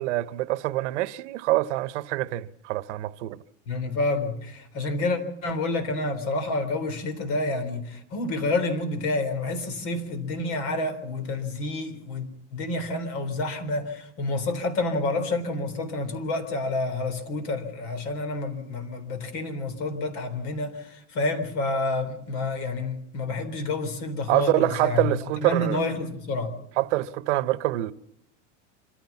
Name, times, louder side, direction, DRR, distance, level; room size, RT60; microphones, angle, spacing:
voice 1, 0.0-3.4 24.3-25.8 26.8-27.9, right 16 dB, 75° right, 1.0 m, -25 dB
voice 2, 3.7-12.3 12.5-25.1 25.4-26.5, left 2 dB, 50° left, 3.8 m, -29 dB
26.0 x 15.0 x 7.2 m
supercardioid pair, 170°, 36 cm